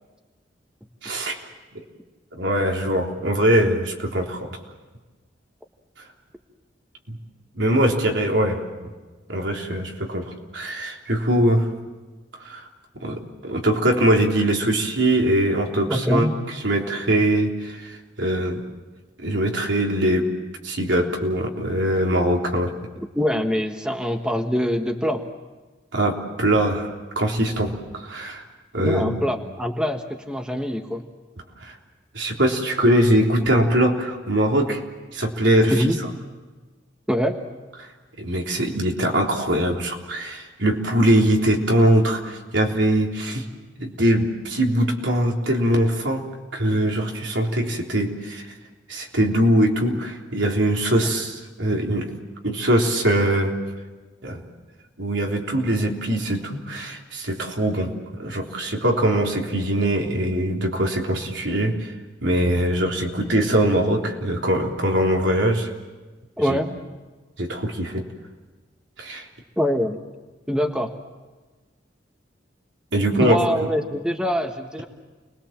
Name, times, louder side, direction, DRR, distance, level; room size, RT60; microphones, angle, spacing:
voice 1, 1.0-1.4 2.3-4.6 7.1-7.2 7.6-8.9 9.3-11.7 12.4-12.7 13.0-18.6 19.2-20.3 20.6-22.7 25.9-28.5 28.7-29.2 31.6-31.7 32.1-34.8 35.1-35.9 38.2-43.4 43.8-46.2 46.5-48.5 48.9-52.1 52.4-53.5 54.2-54.4 55.0-57.9 58.2-61.9 62.2-65.7 66.5-66.6 67.4-68.0 69.0-69.3 72.9-73.4, right 1 dB, 80° right, 0 dB, 3.6 m, -22 dB
voice 2, 15.9-16.3 23.1-25.2 28.8-31.0 35.7-36.0 37.1-37.4 66.4-66.7 69.6-70.0 70.5-70.9 73.1-74.9, equal, 5° right, 4 dB, 1.5 m, -24 dB
29.5 x 21.5 x 7.5 m, 1.3 s
head